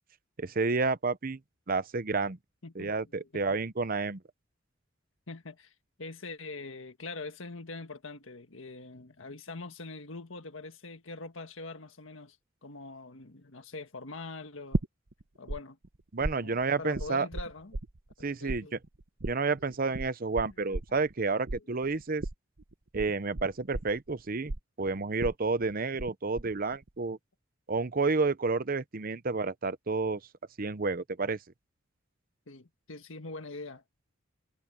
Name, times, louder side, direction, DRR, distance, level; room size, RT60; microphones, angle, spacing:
voice 1, 0.4-1.4 1.7-2.4 2.7-4.2 16.1-17.3 18.2-18.8 19.2-22.2 22.9-24.5 24.8-27.2 27.7-30.2 30.6-31.4, right 4 dB, 45° right, 0.8 m, -30 dB
voice 2, 2.6-3.6 5.3-5.7 6.0-12.4 12.6-14.8 15.3-15.8 16.3-17.8 18.2-18.7 19.8-20.0 32.5-33.8, left 3 dB, 75° left, 1.7 m, -43 dB
sound 1, 14.7-15.6 15.8-18.2 18.5-26.1 26.4-26.9, right 2 dB, 70° right, 1.1 m, -35 dB
head